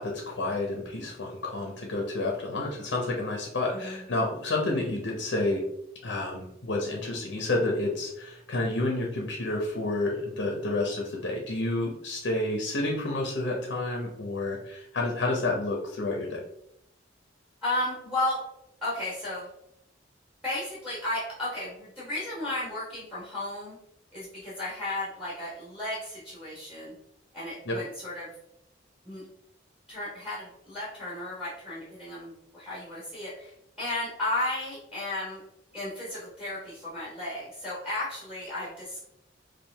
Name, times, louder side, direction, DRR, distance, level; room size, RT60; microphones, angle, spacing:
voice 1, 0.0-5.6 6.0-16.4 27.7-27.8, left 2 dB, 70° left, 0 dB, 0.7 m, -30 dB
voice 2, 3.7-4.0 17.6-18.4 18.8-19.5 20.4-23.7 24.1-26.9 27.3-28.3 29.0-29.2 29.9-33.5 33.8-35.4 35.7-39.0, left 1 dB, 5° right, -8 dB, 1.3 m, -34 dB
4.6 x 2.4 x 3.3 m, 0.78 s
head